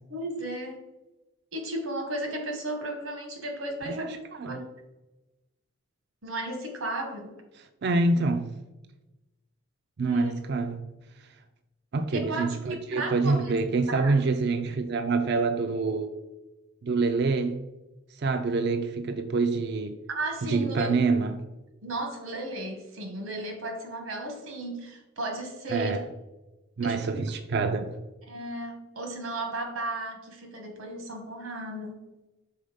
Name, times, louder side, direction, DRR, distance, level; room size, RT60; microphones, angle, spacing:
voice 1, 0.1-0.8 1.5-4.2 4.4-4.7 6.2-7.3 10.0-10.3 12.1-13.5 13.9-14.1 20.1-20.9 21.8-26.0 26.8-27.1 28.3-32.0, right 1 dB, 80° right, 1.3 m, -34 dB
voice 2, 3.9-4.6 7.8-8.5 10.0-10.8 11.9-16.1 16.8-17.6 18.2-20.0 20.4-21.4 25.7-26.0 26.8-28.0, right 3 dB, 50° right, 0.4 m, -26 dB
5.4 x 4.0 x 5.0 m
head